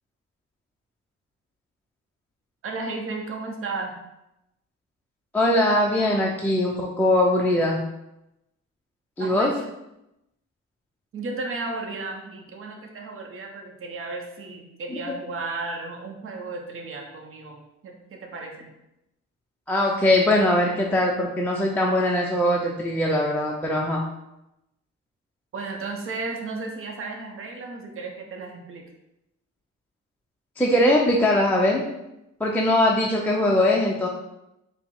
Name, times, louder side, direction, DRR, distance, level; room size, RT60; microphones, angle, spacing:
voice 1, 2.6-3.9 9.2-9.5 11.1-18.7 25.5-28.9, right 3 dB, 45° right, 2 dB, 0.7 m, -34 dB
voice 2, 5.3-7.9 9.2-9.5 19.7-24.0 30.6-31.8 32.4-34.1, left 1 dB, 5° left, -3 dB, 0.4 m, -21 dB
4.5 x 2.1 x 3.7 m, 0.88 s
cardioid pair, 90°, 30 cm